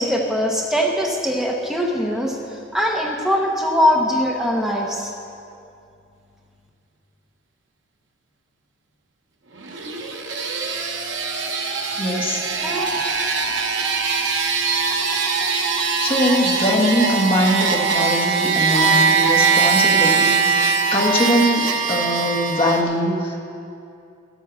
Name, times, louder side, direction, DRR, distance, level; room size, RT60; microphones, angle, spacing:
voice 1, 0.0-5.1 12.6-12.9 13.4-13.5, equal, 5° right, -1 dB, 0.8 m, -21 dB
sound 1, 9.6-22.8, right 5 dB, 65° right, 0.9 m, -21 dB
voice 2, 12.0-12.4 16.0-23.4, equal, 25° left, -2 dB, 1.4 m, -21 dB
12.0 x 8.1 x 6.1 m, 2.5 s
head